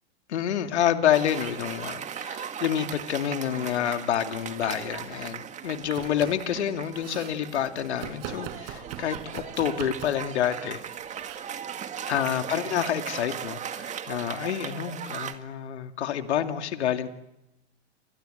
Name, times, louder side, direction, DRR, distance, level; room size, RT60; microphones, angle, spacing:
voice 1, 0.3-10.8 12.1-17.1, left 10 dB, 75° left, 7 dB, 2.5 m, -28 dB
Cheering / Applause, 1.1-15.3, right 8 dB, 20° right, 2.0 m, -38 dB
Domestic sounds home sounds, 5.8-6.5 6.8-7.4 8.0-10.3 11.2-11.4, right 10 dB, 45° right, 4.9 m, -41 dB
30.0 x 25.5 x 7.9 m, 0.89 s
hypercardioid pair, 125°, 34 cm